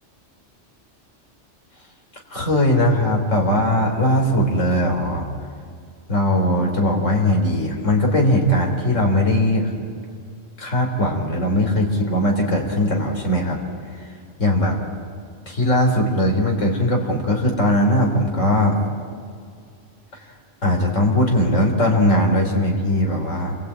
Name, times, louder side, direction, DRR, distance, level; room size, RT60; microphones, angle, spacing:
voice 1, 2.3-5.3 6.1-9.7 10.6-13.6 14.4-14.8 15.5-18.8 20.6-23.6, left 1 dB, 85° left, 1 dB, 4.0 m, -19 dB
29.0 x 23.0 x 8.7 m, 2.2 s
omnidirectional pair, 1.3 m